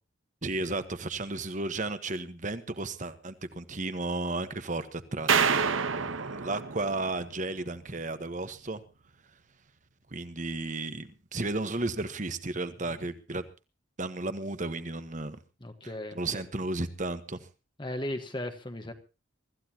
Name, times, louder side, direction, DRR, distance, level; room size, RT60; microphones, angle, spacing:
voice 1, 0.4-5.6 6.0-8.8 10.1-13.4 14.0-15.4 16.1-17.4, right 2 dB, 40° right, 11 dB, 1.3 m, -33 dB
sound 1, 5.3-7.6, right 6 dB, 80° right, 1.1 m, -28 dB
voice 2, 15.6-16.4 17.8-18.9, left 1 dB, 25° left, 8 dB, 1.3 m, -37 dB
24.5 x 14.5 x 2.9 m, 0.30 s
head